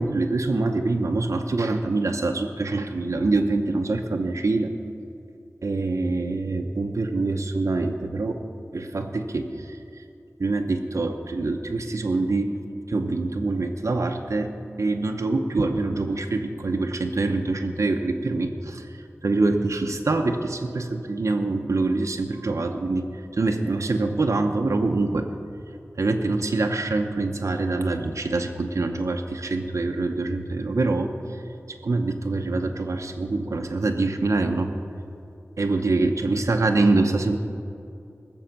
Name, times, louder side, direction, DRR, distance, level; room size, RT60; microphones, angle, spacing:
voice 1, 0.0-4.7 5.6-8.4 8.7-9.8 10.4-12.5 12.9-14.5 14.8-23.0 23.3-25.3 26.0-31.1 31.8-34.7 35.6-37.4, right 3 dB, 70° right, 3 dB, 0.8 m, -25 dB
20.0 x 7.1 x 5.9 m, 2.6 s
wide cardioid pair, 65°, 5 cm